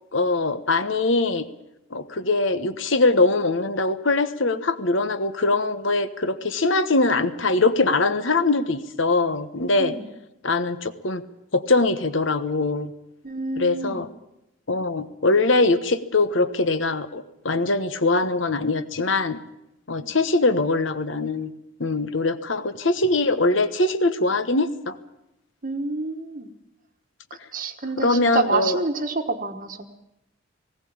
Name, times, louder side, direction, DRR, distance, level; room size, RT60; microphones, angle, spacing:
voice 1, 0.1-1.5 1.9-9.9 10.4-11.2 11.5-12.9 13.6-14.1 14.7-19.4 19.9-21.5 21.8-25.0 28.0-28.8, left 3 dB, 65° left, 11 dB, 1.3 m, -22 dB
voice 2, 13.2-14.0 20.0-20.1 25.6-26.5 27.5-29.9, right 3 dB, 40° right, 6 dB, 1.3 m, -28 dB
19.5 x 17.0 x 8.8 m, 0.88 s
head